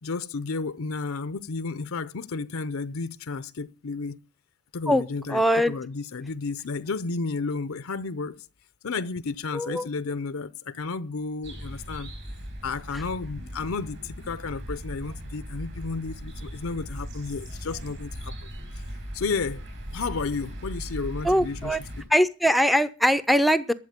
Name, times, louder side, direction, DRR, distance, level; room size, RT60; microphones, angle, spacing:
voice 1, 0.0-4.2 4.7-5.4 5.7-8.4 8.8-12.1 12.6-18.5 19.1-19.6 19.9-21.8, left 4 dB, 65° left, 0.6 m, -32 dB
voice 2, 5.3-5.8 9.5-9.9 21.2-21.8 22.1-23.7, equal, ahead, 0.6 m, -21 dB
sound 1, 11.4-22.0, equal, 55° right, 4.9 m, -38 dB
12.0 x 7.5 x 8.0 m
head